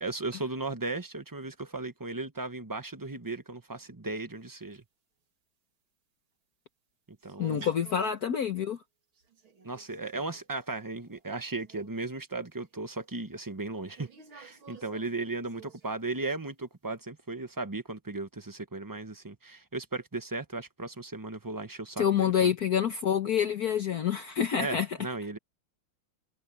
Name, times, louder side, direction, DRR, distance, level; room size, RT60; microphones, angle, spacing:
voice 1, 0.0-4.8 7.2-7.7 9.6-22.5 24.6-25.4, right 3 dB, 15° right, 0.8 m, -36 dB
sound 1, 7.2-8.3 9.1-10.4 10.9-11.3 11.5-12.0 12.6-12.7 13.9-16.2, right 5 dB, 80° right, 3.6 m, -52 dB
voice 2, 7.4-8.8 22.0-24.9, left 8 dB, 55° left, 1.4 m, -27 dB
omnidirectional pair, 2.2 m